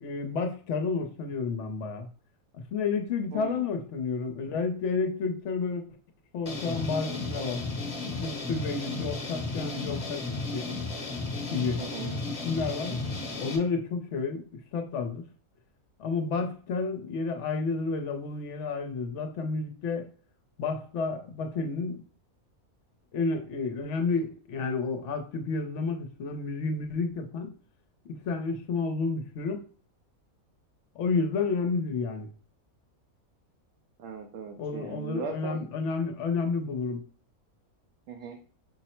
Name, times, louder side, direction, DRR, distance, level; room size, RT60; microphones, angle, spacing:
voice 1, 0.0-2.1 2.5-5.8 6.3-7.6 8.2-10.2 10.5-10.7 11.5-11.8 12.4-13.0 13.4-14.4 14.7-15.2 16.0-20.1 20.6-22.0 23.1-27.5 28.1-29.6 31.0-32.3 34.6-37.0, left 4 dB, 60° left, 0.9 m, -30 dB
voice 2, 3.3-3.7 11.8-12.2 34.0-35.7 38.1-38.4, right 5 dB, 65° right, 0.9 m, -38 dB
sound 1, 6.5-13.6, left 3 dB, 30° left, 1.0 m, -34 dB
5.5 x 2.0 x 4.3 m
omnidirectional pair, 1.5 m